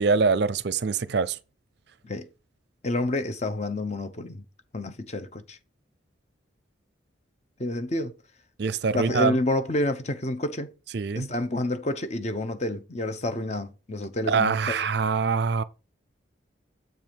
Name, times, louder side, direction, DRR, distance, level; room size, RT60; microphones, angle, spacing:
voice 1, 0.0-1.4 8.6-9.4 10.9-11.3 14.3-15.6, right 5 dB, 55° right, 0.5 m, -24 dB
voice 2, 2.8-4.4 4.7-5.6 7.6-8.1 8.9-10.7 11.1-14.8, left 1 dB, 35° left, 0.8 m, -29 dB
7.8 x 4.7 x 5.2 m
head